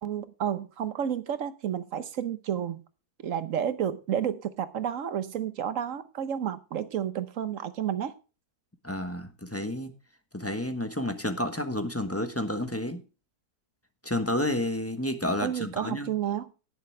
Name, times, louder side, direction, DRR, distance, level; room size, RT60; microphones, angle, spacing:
voice 1, 0.0-2.8 3.2-8.1 15.4-16.5, right 9 dB, 60° right, 1.2 m, -31 dB
voice 2, 8.8-9.9 10.3-13.0 14.0-16.1, left 1 dB, 10° left, 1.0 m, -30 dB
18.0 x 6.9 x 3.3 m
omnidirectional pair, 1.7 m